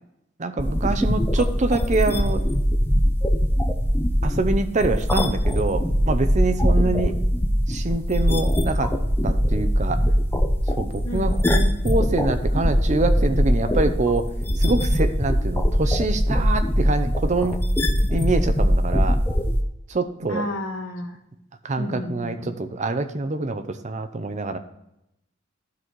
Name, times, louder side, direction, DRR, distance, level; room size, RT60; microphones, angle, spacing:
voice 1, 0.4-2.4 4.2-7.2 7.7-8.9 9.2-10.0 10.7-17.6 18.1-19.2 19.9-20.5 21.6-24.6, right 2 dB, 35° right, 9 dB, 0.6 m, -25 dB
sound 1, 0.6-19.6, equal, 10° left, 0.7 m, -21 dB
voice 2, 11.0-11.4 20.3-21.2 21.8-22.5, left 1 dB, 75° left, 1 dB, 1.4 m, -31 dB
12.5 x 4.2 x 4.6 m, 0.83 s
head